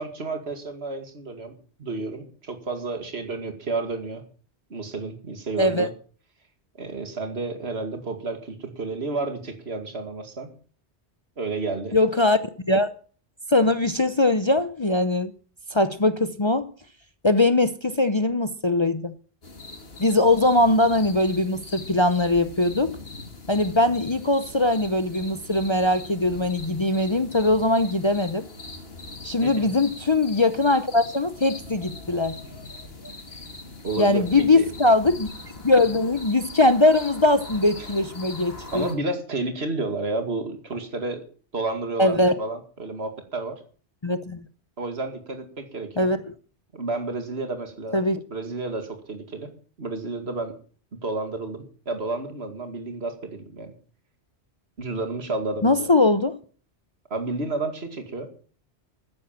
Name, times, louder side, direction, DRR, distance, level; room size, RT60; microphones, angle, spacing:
voice 1, 0.0-4.2 4.7-5.9 6.8-10.5 11.4-12.0 29.4-29.7 33.3-33.4 33.8-34.2 34.5-34.7 38.7-41.2 41.5-43.6 44.8-46.1 46.7-48.0 48.3-49.5 49.8-50.5 51.0-53.7 54.8-55.9 57.1-58.3, right 3 dB, 65° right, 2.5 m, -31 dB
voice 2, 5.6-5.9 11.9-12.4 12.7-12.9 13.5-15.3 15.7-16.6 17.2-19.1 20.0-23.0 23.5-28.4 29.2-32.3 34.0-35.3 35.6-38.9 42.0-42.3 44.0-44.4 46.0-46.3 47.9-48.2 55.6-56.4, left 2 dB, 30° left, 0.8 m, -21 dB
sound 1, 19.4-38.9, left 3 dB, 60° left, 2.7 m, -41 dB
13.5 x 10.5 x 7.4 m
omnidirectional pair, 1.1 m